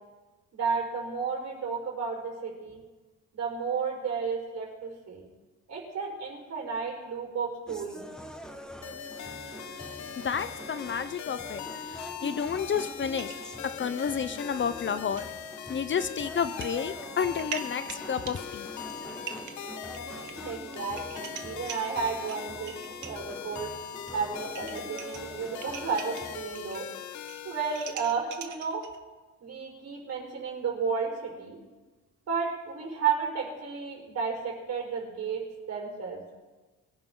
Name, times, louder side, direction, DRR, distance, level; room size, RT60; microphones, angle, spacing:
voice 1, 0.5-2.8 3.3-5.3 5.7-8.1 20.4-22.7 23.0-23.7 24.1-26.9 27.4-28.8 29.4-31.6 32.3-35.4 35.7-36.2, right 5 dB, 60° right, -1 dB, 4.9 m, -32 dB
sound 1, 7.7-26.5, equal, ahead, 1.5 m, -45 dB
sound 2, 8.8-27.9, left 8 dB, 70° left, 1.1 m, -41 dB
voice 2, 10.2-13.4 13.8-15.2 15.7-18.7, left 7 dB, 40° left, 13 dB, 0.7 m, -31 dB
sound 3, 13.1-14.3 14.7-14.8 15.2-15.3 16.3-16.7 17.1-23.3 24.1-24.2 24.4-26.8 27.1-29.0, right 8 dB, 75° right, 1.4 m, -43 dB
22.5 x 10.5 x 3.9 m, 1.2 s
cardioid pair, 90°, 30 cm